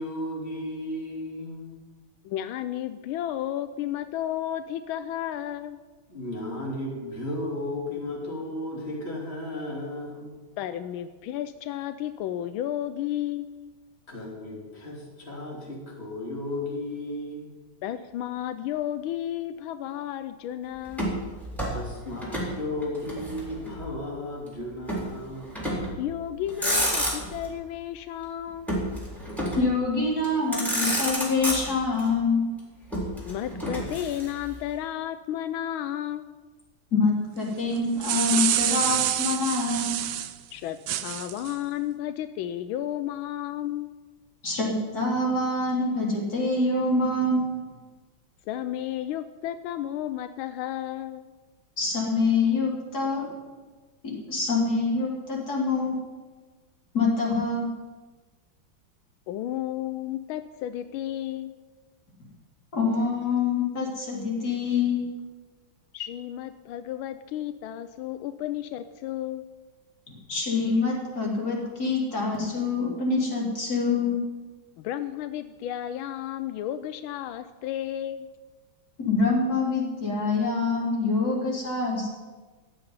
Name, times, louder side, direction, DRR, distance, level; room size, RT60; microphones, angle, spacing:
voice 1, 0.0-1.8 6.1-10.4 14.1-17.6 21.7-25.6, left 1 dB, 30° left, -3 dB, 3.5 m, -34 dB
voice 2, 2.2-5.8 10.6-13.7 17.8-21.2 26.0-28.8 33.3-36.3 40.5-43.9 48.5-51.2 59.3-61.5 65.9-69.4 74.8-78.3, left 12 dB, 85° left, 11 dB, 1.4 m, -33 dB
Motor vehicle (road), 20.9-22.5 22.8-23.9 24.9-25.1 25.5-26.0 26.4-27.5 28.7-29.7 30.2-30.3 30.5-32.0 32.9-34.5, equal, ahead, 3.7 m, -29 dB
voice 3, 29.6-32.5 36.9-40.0 44.4-47.6 51.8-53.3 54.0-56.0 56.9-57.7 62.7-65.0 70.3-74.2 79.0-82.1, left 3 dB, 50° left, -3 dB, 3.7 m, -25 dB
sound 1, 37.8-40.3 40.9-41.5, right 12 dB, 70° right, 1.2 m, -27 dB
15.5 x 5.8 x 9.6 m, 1.3 s
omnidirectional pair, 2.2 m